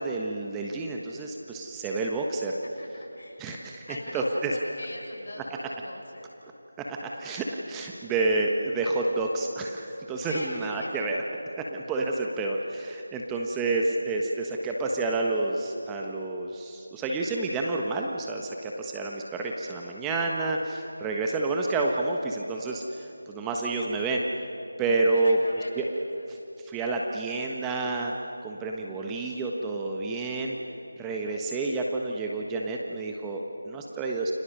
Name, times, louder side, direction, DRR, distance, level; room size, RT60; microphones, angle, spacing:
voice 1, 0.0-2.5 3.4-3.9 4.1-4.5 6.9-11.2 11.7-24.2 24.8-25.4 25.8-25.9 26.3-28.1 28.4-30.6 31.0-34.3, right 3 dB, 10° right, 0 dB, 1.3 m, -29 dB
voice 2, 2.8-3.4 3.9-6.3 10.2-11.4 25.1-26.3, left 1 dB, 60° left, -1 dB, 7.0 m, -41 dB
30.0 x 25.0 x 6.7 m, 2.9 s
figure-of-eight pair, 165°, 0 cm